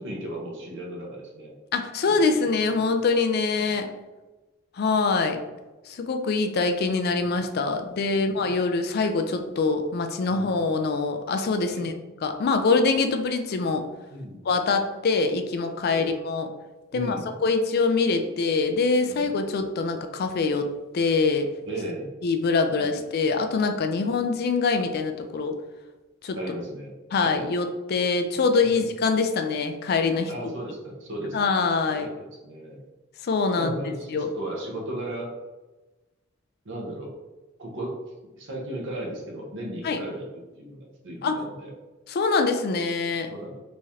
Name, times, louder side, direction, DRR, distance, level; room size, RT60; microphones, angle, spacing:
voice 1, 0.0-1.5 2.0-2.5 2.9-3.0 5.3-5.4 7.2-7.3 8.1-8.5 10.3-10.5 11.7-11.9 14.1-14.4 15.9-16.2 16.9-17.3 19.1-19.6 21.7-22.1 22.8-23.0 24.0-24.2 26.4-27.4 28.6-28.9 30.3-31.5 31.9-32.8 33.6-35.3 36.6-37.2 37.6-38.0 38.4-41.7 43.3-43.6, right 1 dB, 60° right, -1 dB, 0.9 m, -36 dB
voice 2, 1.7-3.9 4.8-5.4 5.9-11.9 12.2-13.8 14.4-16.5 16.9-17.2 17.4-20.7 20.9-21.5 22.2-25.5 26.2-26.4 27.1-30.3 31.3-32.1 33.2-33.7 34.1-34.3 39.8-40.0 41.2-41.4 42.1-43.3, left 4 dB, 50° left, 6 dB, 0.4 m, -24 dB
3.5 x 3.1 x 2.8 m, 1.1 s
head